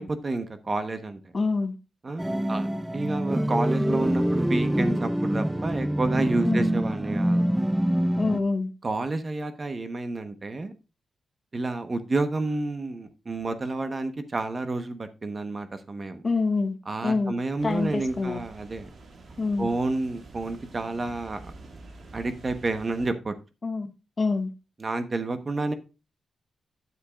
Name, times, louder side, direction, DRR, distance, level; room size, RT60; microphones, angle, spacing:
voice 1, 0.0-1.3 2.0-7.4 8.8-10.7 11.5-16.2 16.9-18.9 19.6-21.5 22.1-23.3 24.8-25.7, right 2 dB, 35° right, 1.0 m, -30 dB
voice 2, 1.3-1.8 6.4-6.7 8.2-8.7 16.2-16.8 17.0-17.4 17.6-18.4 19.4-19.7 23.6-24.5, left 3 dB, 40° left, 0.9 m, -26 dB
sound 1, 2.2-8.4, equal, 10° right, 0.5 m, -25 dB
sound 2, 17.6-23.1, right 2 dB, 60° right, 1.8 m, -47 dB
10.0 x 7.4 x 2.4 m
cardioid pair, 90°, 0 cm